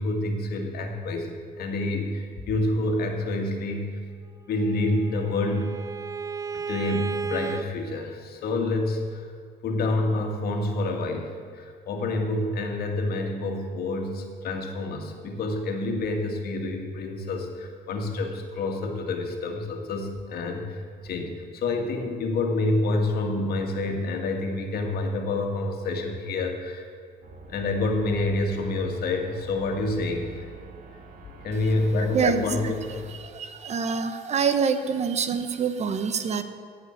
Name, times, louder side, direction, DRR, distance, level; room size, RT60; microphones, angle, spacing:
voice 1, 0.0-3.9 4.5-5.7 6.5-9.2 9.6-11.3 11.6-26.9 27.5-30.3 31.4-33.0, left 2 dB, 65° left, 3 dB, 2.0 m, -28 dB
Bowed string instrument, 4.5-7.7, right 5 dB, 20° right, 0.4 m, -34 dB
sound 1, 27.2-33.1, right 5 dB, 60° right, 1.8 m, -45 dB
voice 2, 33.3-36.4, right 6 dB, 40° right, 10 dB, 0.9 m, -25 dB
17.0 x 5.9 x 7.7 m, 2.1 s
cardioid pair, 110°, 17 cm